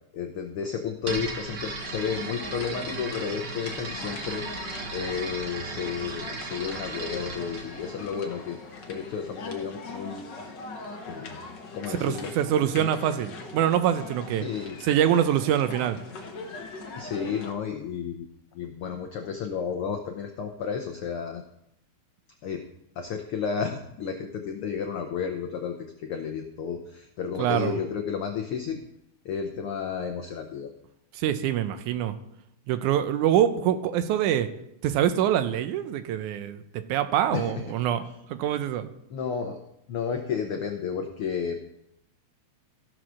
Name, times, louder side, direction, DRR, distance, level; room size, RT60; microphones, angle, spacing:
voice 1, 0.1-4.4 4.9-8.6 8.9-10.3 11.1-11.4 11.7-12.3 12.7-12.9 14.4-14.8 16.9-18.3 18.5-21.4 22.4-22.6 23.0-28.8 29.2-30.7 37.3-37.6 39.1-39.6 39.9-41.6, left 6 dB, 80° left, 4 dB, 1.2 m, -32 dB
sound 1, 1.0-8.8, right 3 dB, 50° right, 1.6 m, -36 dB
sound 2, 1.8-17.5, left 3 dB, 60° left, 1.1 m, -41 dB
voice 2, 11.9-14.4 14.8-16.0 27.4-27.7 31.2-32.2 32.7-34.5 34.8-38.0 38.3-38.9, right 10 dB, 85° right, 10 dB, 2.2 m, -25 dB
14.5 x 4.8 x 6.2 m, 0.78 s
omnidirectional pair, 3.5 m